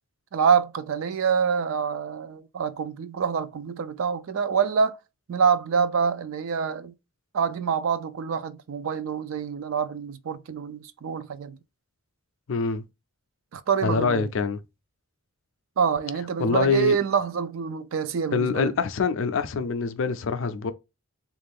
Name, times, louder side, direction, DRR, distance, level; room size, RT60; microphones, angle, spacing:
voice 1, 0.3-5.0 5.3-6.9 7.3-11.6 13.5-14.3 15.8-18.7, right 6 dB, 65° right, 0.4 m, -26 dB
voice 2, 12.5-12.8 13.8-14.6 16.4-17.0 18.3-20.7, left 4 dB, 60° left, 0.4 m, -25 dB
3.6 x 2.5 x 3.5 m
head